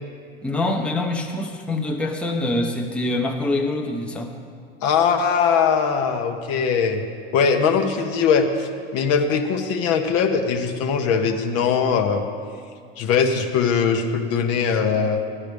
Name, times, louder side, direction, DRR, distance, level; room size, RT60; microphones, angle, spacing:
voice 1, 0.4-4.3, left 2 dB, 5° left, 0 dB, 0.9 m, -25 dB
voice 2, 4.8-7.0 7.3-12.2 13.0-15.2, left 6 dB, 50° left, 5 dB, 1.1 m, -21 dB
15.5 x 11.0 x 3.5 m, 2.2 s
hypercardioid pair, 95°, 31 cm